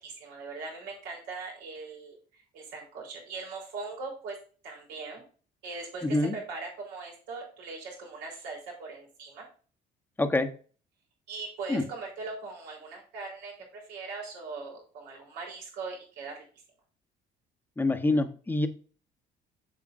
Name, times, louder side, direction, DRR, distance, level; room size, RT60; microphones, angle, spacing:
voice 1, 0.0-4.4 4.6-5.2 5.6-9.4 11.3-16.4, right 4 dB, 90° right, -2 dB, 3.8 m, -40 dB
voice 2, 6.0-6.3 10.2-10.5 11.7-11.8 17.8-18.7, left 2 dB, 10° left, 7 dB, 0.9 m, -26 dB
7.4 x 7.2 x 2.5 m, 0.40 s
cardioid pair, 110°, 17 cm